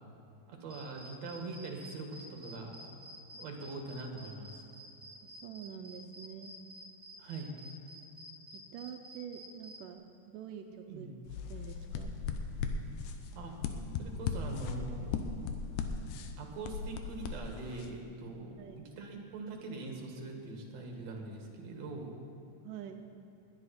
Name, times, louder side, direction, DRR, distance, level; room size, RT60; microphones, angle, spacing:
voice 1, 0.5-2.8 3.4-4.5 7.2-7.5 10.9-11.2 13.3-13.6 14.0-15.2 16.4-22.2, right 3 dB, 55° right, 2 dB, 2.7 m, -43 dB
sound 1, 0.7-9.8, right 1 dB, 15° right, 1.8 m, -50 dB
voice 2, 5.2-6.5 8.5-11.1 11.5-12.1 18.6-18.9 22.6-23.1, right 8 dB, 85° right, 4 dB, 2.2 m, -46 dB
sound 2, 11.3-17.9, left 5 dB, 75° left, 2.2 m, -38 dB
20.5 x 10.5 x 4.3 m, 2.7 s
omnidirectional pair, 3.7 m